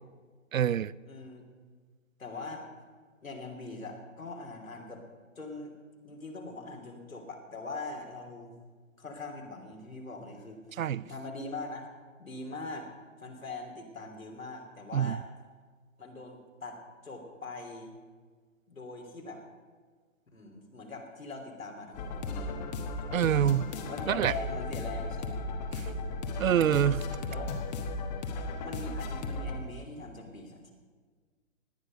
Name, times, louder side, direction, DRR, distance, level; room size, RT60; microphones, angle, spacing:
voice 1, 0.5-0.9 10.8-11.0 14.9-15.2 23.1-23.6 24.1-24.3 26.4-27.0, right 9 dB, 80° right, 20 dB, 0.5 m, -25 dB
voice 2, 1.0-1.5 2.2-2.6 3.2-5.0 5.4-5.7 6.0-8.5 9.0-10.6 11.1-11.9 12.2-12.9 13.2-15.2 16.0-17.9 18.7-19.4 20.3-22.7 23.2-25.4 27.3-27.6 28.6-30.7, left 2 dB, 85° left, 1 dB, 3.1 m, -42 dB
sound 1, 21.9-29.6, left 3 dB, 30° left, 1.3 m, -35 dB
18.0 x 9.9 x 5.2 m, 1.5 s
figure-of-eight pair, 130°, 40 cm